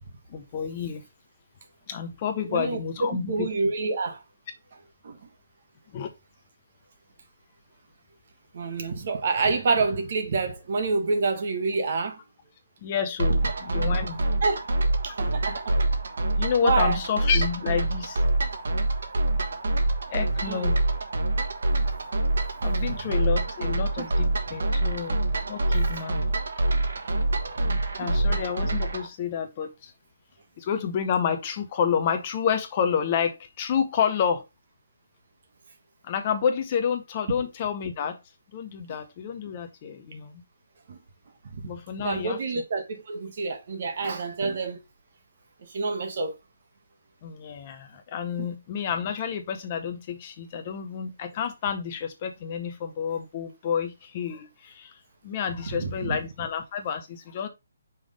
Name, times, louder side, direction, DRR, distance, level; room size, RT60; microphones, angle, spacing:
voice 1, 0.3-1.0 1.9-3.5 5.9-6.1 12.8-14.3 16.4-18.2 20.1-20.8 22.6-25.2 25.5-26.2 28.0-29.9 30.6-34.4 36.1-38.2 38.5-40.3 41.6-42.4 47.2-54.9 55.2-57.5, left 7 dB, 25° left, 0.6 m, -29 dB
voice 2, 2.4-4.2 5.0-5.3 8.5-12.2 14.4-14.7 15.0-15.7 16.6-17.0 20.4-20.8 22.9-23.1 24.0-24.1 24.8-25.0 27.6-28.1 40.9-41.0 41.5-41.7 42.0-44.8 45.6-46.3 48.4-48.5 55.7-56.2, right 4 dB, 40° right, 1.2 m, -28 dB
sound 1, 13.2-29.1, right 2 dB, 60° right, 1.3 m, -26 dB
5.6 x 3.5 x 4.9 m
hypercardioid pair, 175°, 0 cm